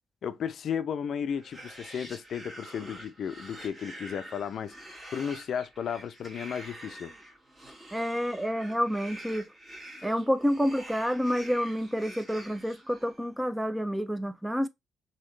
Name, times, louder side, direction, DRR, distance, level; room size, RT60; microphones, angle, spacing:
voice 1, 0.2-7.1, left 7 dB, 60° left, 0.4 m, -34 dB
sound 1, 1.3-13.3, right 1 dB, 20° right, 1.5 m, -47 dB
voice 2, 7.9-9.4 10.0-14.7, equal, 5° right, 0.4 m, -29 dB
3.1 x 2.8 x 3.0 m
cardioid pair, 90°, 0 cm